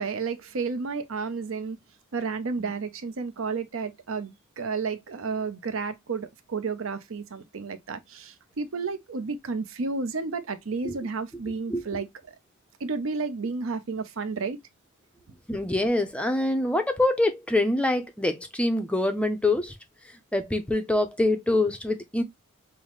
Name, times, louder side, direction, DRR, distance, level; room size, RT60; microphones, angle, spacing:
voice 1, 0.0-1.8 2.1-12.1 12.8-14.6, right 4 dB, 65° right, 0.6 m, -31 dB
voice 2, 15.5-19.7 20.3-22.2, left 2 dB, 5° left, 0.5 m, -25 dB
5.5 x 2.1 x 3.0 m
head